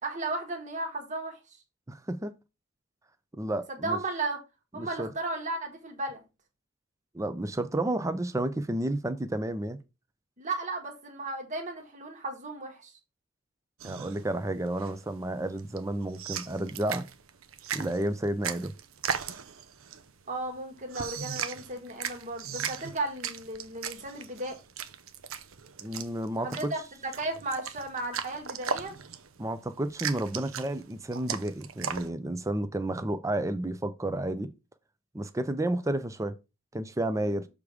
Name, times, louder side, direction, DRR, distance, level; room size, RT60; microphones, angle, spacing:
voice 1, 0.0-1.6 3.7-4.4 4.7-6.2 10.4-13.0 20.3-24.6 26.4-29.0 37.2-37.3, right 2 dB, 35° right, 1.5 m, -35 dB
voice 2, 1.9-2.4 3.3-4.0 4.8-5.1 7.1-9.8 13.8-17.0 17.7-18.7 25.8-26.7 29.4-34.5 35.1-36.4 36.7-37.5, right 1 dB, 15° right, 0.5 m, -31 dB
sound 1, 13.8-32.1, right 7 dB, 85° right, 0.7 m, -38 dB
6.7 x 3.5 x 4.9 m
head